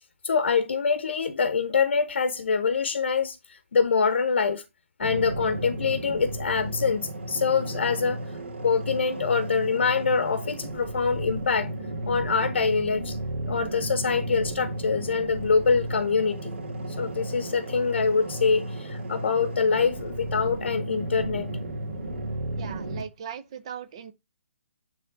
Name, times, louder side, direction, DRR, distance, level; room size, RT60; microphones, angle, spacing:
voice 1, 0.2-4.6 5.0-8.2 8.6-11.7 12.1-13.2 13.5-16.5 17.0-21.5, left 5 dB, 55° left, 0.9 m, -25 dB
sound 1, 5.0-23.0, right 1 dB, 50° right, 2.4 m, -34 dB
voice 2, 22.6-24.1, right 8 dB, 25° right, 0.6 m, -38 dB
9.6 x 3.5 x 3.9 m
hypercardioid pair, 175°, 7 cm